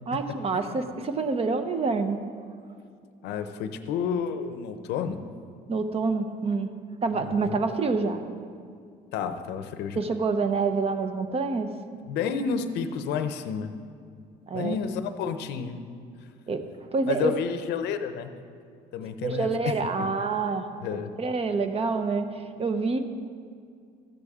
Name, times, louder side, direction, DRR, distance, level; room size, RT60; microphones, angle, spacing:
voice 1, 0.1-2.2 5.7-6.7 7.0-8.2 10.0-11.7 14.5-14.8 16.5-16.6 16.9-17.3 19.2-20.7 20.9-23.0, right 4 dB, 35° right, 8 dB, 0.8 m, -27 dB
voice 2, 3.2-5.2 7.1-7.6 9.1-10.0 12.0-13.7 14.5-15.8 17.1-18.3 18.9-20.1 20.8-21.1, left 7 dB, 85° left, 9 dB, 0.7 m, -30 dB
14.0 x 8.1 x 3.6 m, 2.3 s
cardioid pair, 110°, 17 cm